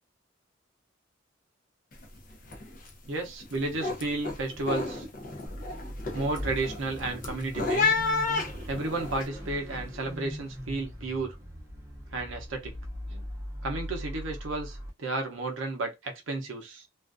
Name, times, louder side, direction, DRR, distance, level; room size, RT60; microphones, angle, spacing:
sound 1, 1.9-2.2 2.4-2.9 3.3-9.2, left 4 dB, 45° left, 0.5 m, -31 dB
voice 1, 3.1-5.1 6.1-7.9 8.7-11.4 12.1-12.7 13.1-13.2 13.6-16.9, right 2 dB, 80° right, 0.6 m, -32 dB
Car / Idling / Accelerating revving vroom, 5.5-14.9, equal, 15° right, 0.6 m, -40 dB
2.4 x 2.3 x 2.4 m
head